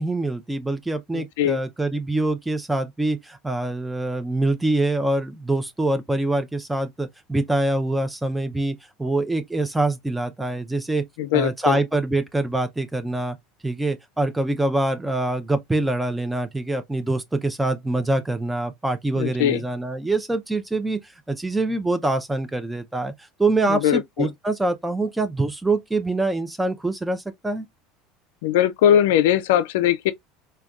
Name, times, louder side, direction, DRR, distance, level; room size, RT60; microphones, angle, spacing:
voice 1, 0.0-11.0 11.3-13.4 13.6-27.7, right 2 dB, 10° right, 0.4 m, -25 dB
voice 2, 1.1-1.6 11.2-11.8 19.1-19.6 23.6-24.3 28.4-30.1, left 10 dB, 75° left, 0.4 m, -20 dB
3.4 x 2.2 x 2.3 m
hypercardioid pair, 90°, 0 cm